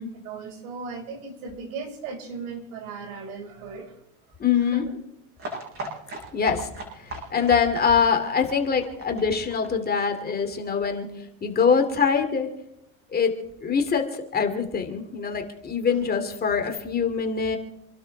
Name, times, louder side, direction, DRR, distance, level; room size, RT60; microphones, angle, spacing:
voice 1, 0.1-4.0 4.6-5.0 6.1-6.2 7.0-7.4, right 4 dB, 80° right, 4 dB, 5.4 m, -37 dB
voice 2, 4.4-4.8 6.3-6.7 7.3-11.1 11.4-12.5 13.1-13.3 13.6-17.6, left 6 dB, 20° left, 5 dB, 2.7 m, -23 dB
sound 1, 5.4-10.9 11.2-11.3 11.5-11.6 11.9-12.0, right 2 dB, 30° right, 7.7 m, -38 dB
28.5 x 12.0 x 3.5 m, 0.79 s
supercardioid pair, 125°, 42 cm